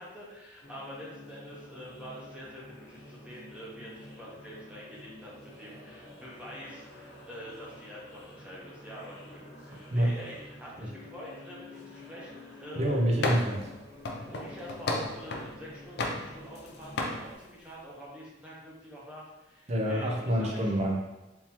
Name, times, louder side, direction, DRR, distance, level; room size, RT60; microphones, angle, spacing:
voice 1, 0.0-13.1 14.2-20.8, equal, 5° right, -6 dB, 0.8 m, -46 dB
sound 1, 0.6-17.4, left 2 dB, 85° left, 1.1 m, -50 dB
voice 2, 12.8-13.7 19.7-21.0, equal, 35° right, 1 dB, 0.6 m, -27 dB
sound 2, 13.2-13.6 14.1-15.5 16.0-16.7 17.0-17.2, left 2 dB, 60° left, 0.4 m, -32 dB
3.6 x 2.8 x 2.9 m, 1.0 s
head